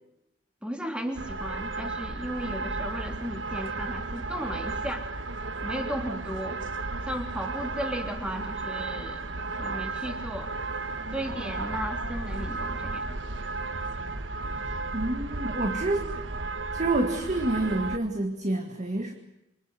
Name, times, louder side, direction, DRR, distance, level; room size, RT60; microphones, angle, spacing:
voice 1, 0.6-5.0 5.6-6.6 7.1-9.2 9.6-10.5 11.1-13.1, equal, 5° right, 4 dB, 3.3 m, -35 dB
sound 1, 1.1-18.0, right 3 dB, 80° right, 1.4 m, -34 dB
voice 2, 14.9-16.1 16.7-19.1, right 2 dB, 40° right, 5 dB, 2.1 m, -28 dB
27.5 x 25.0 x 7.9 m, 0.87 s
head